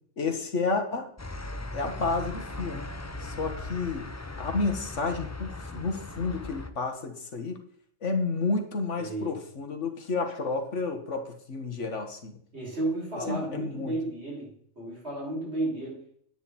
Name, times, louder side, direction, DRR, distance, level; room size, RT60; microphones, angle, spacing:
voice 1, 0.2-1.1 1.7-2.8 3.2-4.1 4.4-7.6 8.0-12.4 13.3-13.9, left 3 dB, 80° left, 5 dB, 1.9 m, -31 dB
sound 1, 1.2-6.7, left 2 dB, 15° left, 0.6 m, -38 dB
voice 2, 9.0-9.4 12.5-16.0, right 2 dB, 60° right, -4 dB, 6.4 m, -33 dB
10.0 x 9.7 x 4.4 m, 0.63 s
omnidirectional pair, 1.2 m